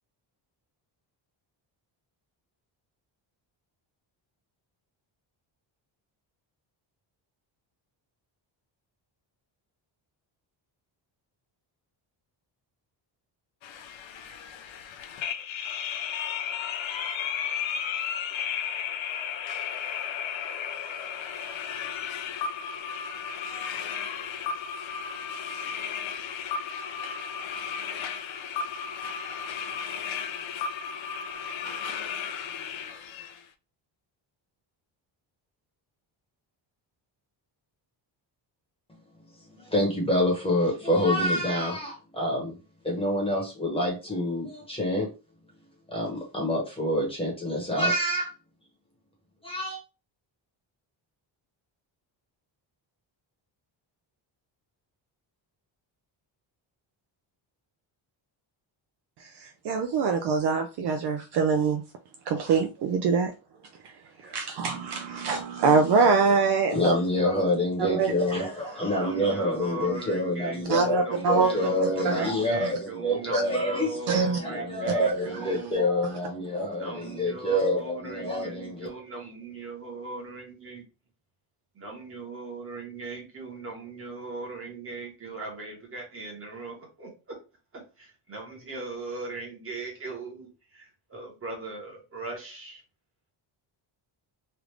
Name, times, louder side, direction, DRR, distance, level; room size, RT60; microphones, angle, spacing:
sound 1, 13.6-33.4, left 7 dB, 75° left, 0.6 m, -34 dB
voice 1, 39.6-42.5 42.8-45.1 45.9-48.3 49.4-49.8 66.7-78.9, left 1 dB, 10° left, 1.0 m, -27 dB
voice 2, 59.4-61.8 62.3-63.3 64.3-66.9 67.8-68.1 70.7-72.3 72.6-72.7 73.3-73.4 74.1-74.4 74.9-75.1 75.4-75.5 76.5-76.7, right 5 dB, 60° right, 0.5 m, -24 dB
voice 3, 69.0-75.7 76.8-80.8 81.8-87.1 88.3-90.5 91.1-92.7, right 3 dB, 30° right, 1.2 m, -38 dB
3.3 x 2.5 x 3.1 m
cardioid pair, 170°, 47 cm